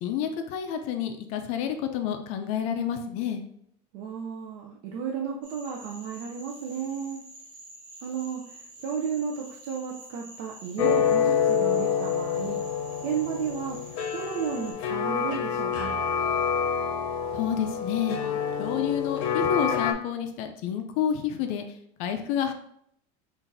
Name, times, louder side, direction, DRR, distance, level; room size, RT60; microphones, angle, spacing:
voice 1, 0.0-3.4 17.3-18.2 18.6-21.6 22.0-22.5, left 9 dB, 45° left, 6 dB, 0.4 m, -29 dB
voice 2, 3.9-7.2 8.0-12.6 13.0-13.8 14.1-16.0, right 7 dB, 55° right, 0 dB, 0.5 m, -33 dB
Cricket / Frog, 5.4-14.7, right 2 dB, 35° right, 1.4 m, -48 dB
sound 1, 10.8-19.9, left 7 dB, 90° left, 0.7 m, -27 dB
5.6 x 2.5 x 2.5 m, 0.72 s
cardioid pair, 175°, 16 cm